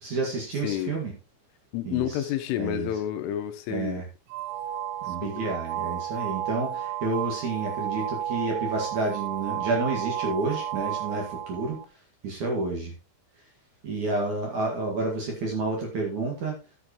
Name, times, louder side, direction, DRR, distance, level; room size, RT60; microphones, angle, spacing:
voice 1, 0.0-1.1 1.8-2.3 2.6-2.9 3.7-4.0 5.1-11.8 12.2-12.9 13.8-16.5, right 3 dB, 50° right, 2.6 m, -30 dB
voice 2, 0.6-1.0 1.7-4.0 5.1-5.5, left 11 dB, 85° left, 3.4 m, -30 dB
sound 1, 4.3-11.8, right 10 dB, 80° right, 3.2 m, -32 dB
12.0 x 8.1 x 3.0 m
omnidirectional pair, 5.7 m